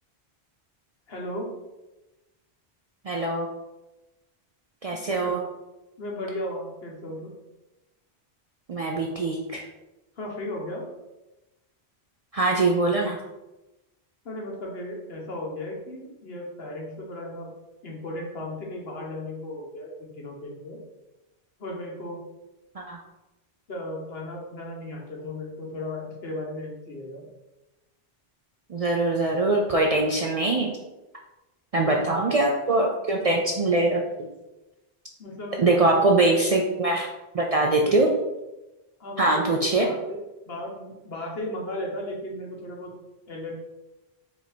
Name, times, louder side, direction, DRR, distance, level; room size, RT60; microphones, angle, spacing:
voice 1, 1.1-1.5 5.1-5.4 6.0-7.3 10.2-10.8 14.2-17.5 17.8-20.8 21.6-22.3 23.7-27.3 31.9-32.4 35.2-36.1 37.8-38.0 39.0-42.9 43.3-43.5, left 1 dB, 70° left, -2 dB, 1.3 m, -36 dB
voice 2, 3.1-3.5 4.8-5.4 8.7-9.6 12.3-13.2 22.8-23.0 28.7-30.7 31.7-34.3 35.6-37.1 37.3-38.1 39.2-39.9, right 2 dB, 50° right, 0 dB, 0.4 m, -23 dB
4.5 x 2.6 x 4.1 m, 1.0 s
omnidirectional pair, 1.1 m